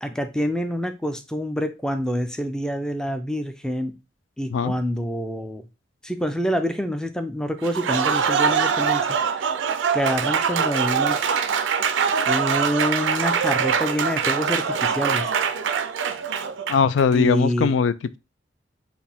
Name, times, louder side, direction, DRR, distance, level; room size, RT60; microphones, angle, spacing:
voice 1, 0.0-4.0 4.4-5.7 6.0-9.5 9.9-11.2 11.6-11.7 12.3-15.3 17.1-17.8, equal, 5° left, 0.4 m, -27 dB
Applause, 7.6-17.0, right 6 dB, 85° right, 0.4 m, -23 dB
voice 2, 16.7-18.2, left 6 dB, 85° left, 0.3 m, -20 dB
4.7 x 2.6 x 3.4 m
head